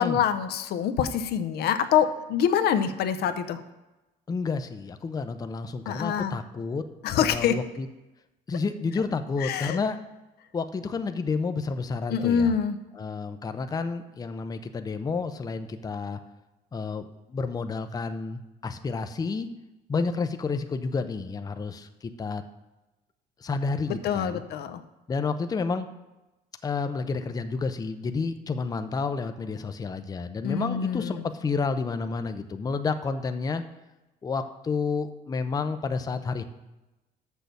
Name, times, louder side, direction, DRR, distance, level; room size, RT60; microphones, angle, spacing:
voice 1, 0.0-3.6 5.9-6.3 7.0-7.6 9.4-9.8 12.1-12.8 23.9-24.8 30.4-31.2, left 8 dB, 70° left, 10 dB, 0.6 m, -25 dB
voice 2, 4.3-6.8 7.1-7.9 8.5-10.0 10.5-12.5 13.0-16.2 16.7-19.5 19.9-22.4 23.4-24.4 25.1-25.9 26.6-33.6 34.2-36.4, left 4 dB, 20° left, 9 dB, 0.5 m, -30 dB
6.7 x 6.3 x 6.7 m, 1.0 s
cardioid pair, 110°, 17 cm